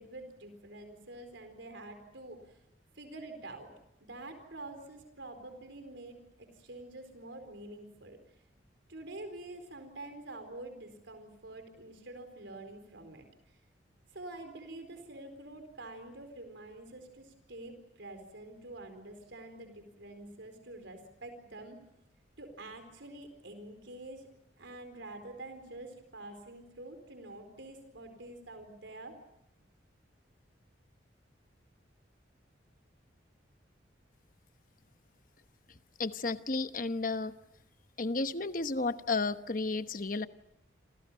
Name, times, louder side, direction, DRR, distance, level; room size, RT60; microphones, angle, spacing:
voice 1, 0.0-2.6 2.9-3.7 4.0-8.2 8.9-13.6 14.1-21.8 22.4-24.3 24.6-29.2, right 2 dB, 80° right, 7 dB, 4.4 m, -47 dB
voice 2, 36.0-37.3 38.0-40.3, left 3 dB, 45° left, 10 dB, 1.1 m, -32 dB
28.5 x 28.0 x 5.7 m, 0.80 s
head